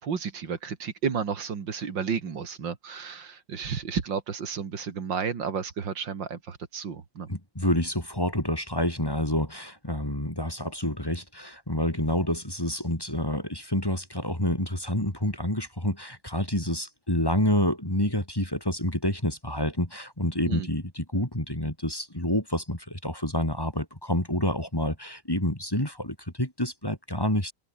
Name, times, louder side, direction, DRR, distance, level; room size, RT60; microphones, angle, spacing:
voice 1, 0.0-7.3 20.5-20.7, right 6 dB, 80° right, 2.8 m, -32 dB
voice 2, 7.3-27.5, left 1 dB, 10° left, 3.9 m, -28 dB
open air
omnidirectional pair, 2.0 m